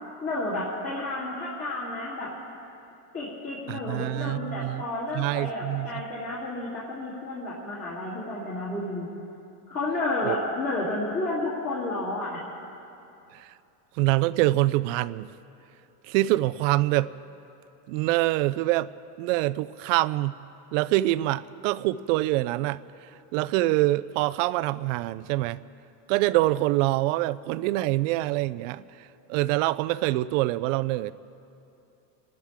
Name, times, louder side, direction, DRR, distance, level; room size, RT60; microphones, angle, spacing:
voice 1, 0.2-2.3 3.1-9.1 9.7-12.4, left 2 dB, 30° left, -8 dB, 2.9 m, -31 dB
voice 2, 3.7-4.8 5.1-6.0 10.3-10.4 13.3-13.5 14.0-15.3 16.1-17.1 17.9-18.9 19.2-20.4 20.7-25.6 26.1-31.1, right 17 dB, 55° right, 16 dB, 0.5 m, -25 dB
27.5 x 12.0 x 3.6 m, 2.7 s
supercardioid pair, 150°, 46 cm